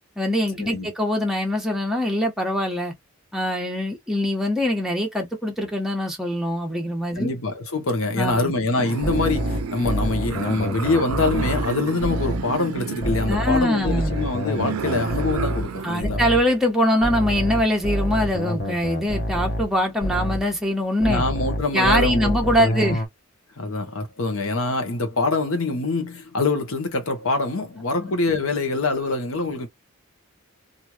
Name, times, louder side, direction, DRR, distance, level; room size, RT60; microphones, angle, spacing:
voice 1, 0.2-2.9 3.3-7.3 8.2-8.5 13.3-14.2 15.8-21.2 21.7-23.0 28.0-28.1, equal, ahead, 0.9 m, -23 dB
voice 2, 7.2-16.2 21.0-22.4 22.6-23.0 23.6-29.7, left 3 dB, 75° left, 1.0 m, -25 dB
sound 1, 8.8-15.9, right 6 dB, 80° right, 0.4 m, -31 dB
sound 2, 9.0-12.5 13.0-16.5 17.0-20.5 21.0-23.1, equal, 45° left, 0.8 m, -27 dB
3.0 x 2.6 x 2.2 m
head